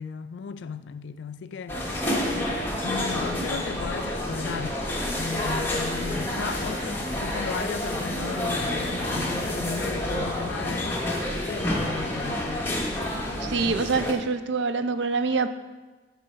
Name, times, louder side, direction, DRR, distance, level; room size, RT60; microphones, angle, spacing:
voice 1, 0.0-1.9 2.8-4.8 5.2-11.0 11.5-12.8, left 6 dB, 70° left, 0.3 m, -35 dB
sound 1, 1.7-14.1, left 1 dB, 10° left, 0.8 m, -29 dB
voice 2, 13.4-15.5, right 4 dB, 65° right, 0.4 m, -25 dB
8.4 x 3.2 x 5.4 m
head